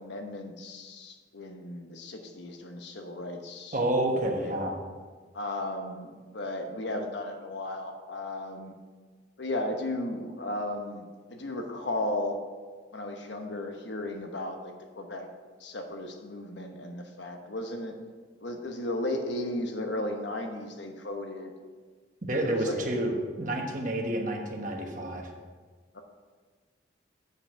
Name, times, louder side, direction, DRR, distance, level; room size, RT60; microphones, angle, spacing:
voice 1, 0.0-3.8 4.1-4.6 5.3-8.7 9.4-12.4 12.9-15.3 15.6-18.0 18.4-21.5 22.4-22.9 25.9-26.0, left 1 dB, 80° left, 4 dB, 1.0 m, -35 dB
voice 2, 3.7-4.7 22.2-25.3, right 1 dB, 45° right, 2 dB, 1.2 m, -29 dB
7.8 x 5.6 x 5.9 m, 1.5 s
head